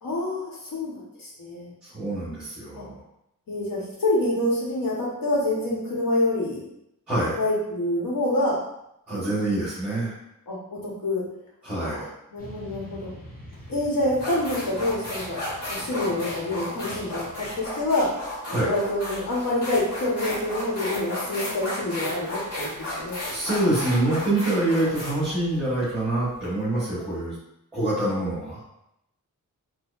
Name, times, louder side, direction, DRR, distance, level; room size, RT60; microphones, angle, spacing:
voice 1, 0.0-1.7 2.7-2.9 3.5-6.6 7.4-8.6 9.1-9.3 10.5-11.2 11.8-13.1 13.7-15.4 15.7-18.1 18.5-23.2, left 1 dB, 80° left, -4 dB, 1.1 m, -27 dB
voice 2, 1.8-3.0 7.1-7.4 9.1-10.1 11.6-12.1 18.5-18.7 23.3-27.3 27.7-28.6, right 1 dB, 5° right, -10 dB, 1.1 m, -25 dB
Motorcycle / Traffic noise roadway noise, 12.4-17.6, equal, 25° left, 0.6 m, -45 dB
sound 1, 13.5-13.7 14.1-26.5, left 1 dB, 45° left, 1.5 m, -33 dB
4.4 x 2.2 x 2.4 m, 0.81 s
wide cardioid pair, 170°, 34 cm